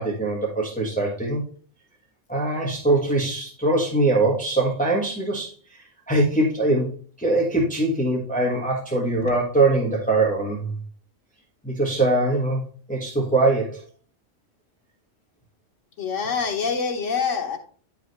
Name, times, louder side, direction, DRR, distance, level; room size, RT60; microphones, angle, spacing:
voice 1, 0.0-1.4 2.3-5.5 6.1-6.9 7.2-10.7 11.6-12.6 12.9-13.8, right 2 dB, 5° left, -2 dB, 1.2 m, -22 dB
voice 2, 16.0-17.6, left 5 dB, 85° left, 3 dB, 1.5 m, -25 dB
9.7 x 4.9 x 3.2 m, 0.43 s
omnidirectional pair, 1.3 m